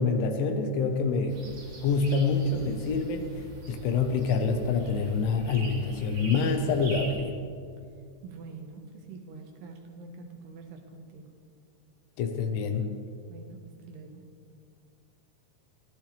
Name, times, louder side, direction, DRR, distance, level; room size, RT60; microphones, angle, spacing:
voice 1, 0.0-1.4 1.8-3.3 3.7-7.4 12.2-12.9, left 4 dB, 85° left, 6 dB, 3.6 m, -26 dB
sound 1, 1.3-7.2, right 2 dB, 40° right, 3.6 m, -43 dB
voice 2, 8.2-11.3 13.3-14.3, right 4 dB, 70° right, 3 dB, 3.0 m, -45 dB
24.0 x 15.5 x 3.4 m, 2.3 s
omnidirectional pair, 5.4 m